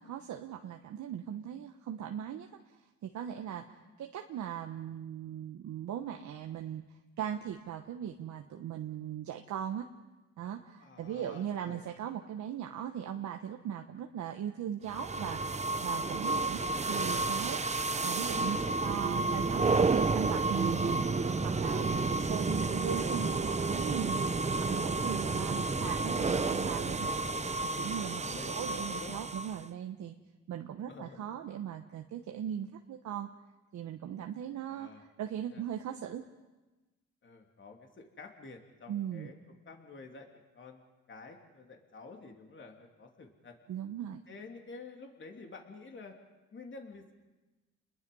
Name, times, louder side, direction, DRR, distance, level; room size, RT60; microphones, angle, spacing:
voice 1, 0.0-2.5 3.0-6.8 7.2-9.9 10.4-17.6 18.0-21.0 21.4-24.3 24.6-27.2 27.8-30.1 30.5-33.3 33.7-36.2 38.9-39.3 43.7-44.2, right 9 dB, 70° right, 4 dB, 1.2 m, -39 dB
voice 2, 10.8-11.8 18.6-19.0 25.3-26.3 28.3-29.2 30.7-31.2 34.6-35.0 35.5-35.6 37.2-40.8 41.1-43.5 44.3-46.1 46.5-47.1, left 4 dB, 40° left, 3 dB, 3.2 m, -50 dB
sound 1, 14.9-29.7, right 3 dB, 20° right, 1.0 m, -31 dB
30.0 x 21.0 x 5.5 m, 1.1 s
cardioid pair, 90°, 30 cm